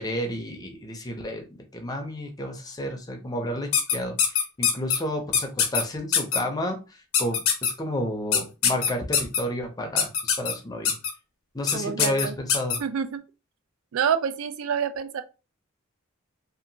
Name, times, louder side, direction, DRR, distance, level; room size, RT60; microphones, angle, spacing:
voice 1, 0.0-10.1 10.4-10.9 11.5-12.8, equal, 20° left, 0.5 m, -31 dB
sound 1, 3.7-5.0 5.3-5.8 6.1-6.4 7.1-7.7 8.3-9.4 10.0-10.5 10.8-11.1 11.7-11.8 12.0-12.8, left 7 dB, 80° left, 0.7 m, -22 dB
voice 2, 11.7-12.3 12.8-13.2 13.9-15.2, right 7 dB, 75° right, 0.3 m, -27 dB
2.8 x 2.5 x 2.6 m
head